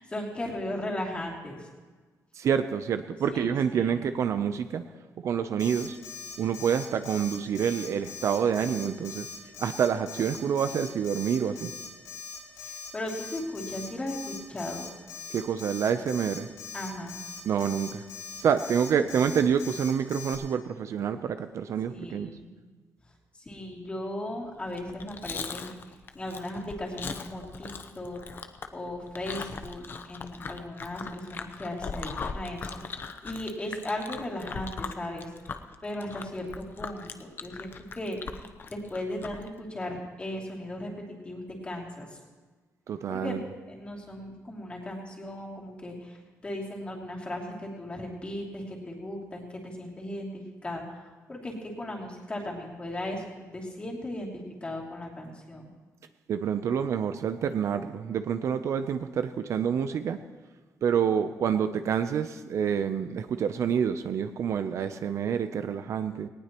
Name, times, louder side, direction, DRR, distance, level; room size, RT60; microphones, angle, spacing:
voice 1, 0.0-1.7 3.3-4.0 12.5-14.9 16.7-17.1 21.9-22.5 23.4-28.2 28.7-35.5 35.8-38.4 38.7-42.2 43.1-53.2 53.5-55.7, left 1 dB, 20° left, -2 dB, 2.8 m, -37 dB
voice 2, 2.3-4.8 5.2-6.0 6.4-9.3 9.6-11.7 15.3-16.5 17.5-18.0 18.4-22.3 42.9-43.4 56.3-60.2 60.8-66.3, right 7 dB, 55° right, 10 dB, 0.6 m, -27 dB
Alarm, 5.6-20.4, left 6 dB, 80° left, 5.7 m, -41 dB
Chewing mastication, 24.7-39.5, left 5 dB, 35° left, 0.7 m, -39 dB
18.5 x 18.5 x 3.0 m, 1.4 s
cardioid pair, 155°, 6 cm